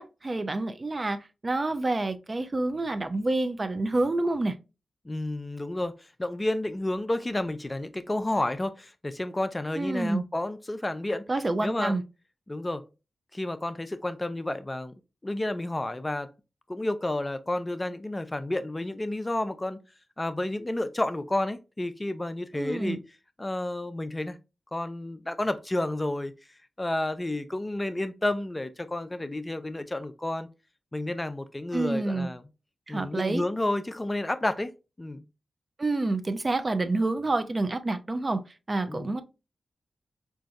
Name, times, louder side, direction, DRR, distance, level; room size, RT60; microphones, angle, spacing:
voice 1, 0.0-4.5 9.7-10.2 11.3-12.0 22.5-23.0 31.7-32.3 32.9-33.4 35.8-38.4 38.7-39.2, right 2 dB, 40° right, 0.4 m, -28 dB
voice 2, 5.1-11.2 11.6-12.0 12.5-12.8 13.3-14.9 15.2-16.3 16.7-19.8 20.2-23.0 23.4-24.4 24.7-26.3 26.8-30.5 30.9-32.4 32.9-34.7 35.0-35.2 38.9-39.1, left 1 dB, 25° left, 0.4 m, -31 dB
3.8 x 2.5 x 2.3 m
cardioid pair, 45°, 0 cm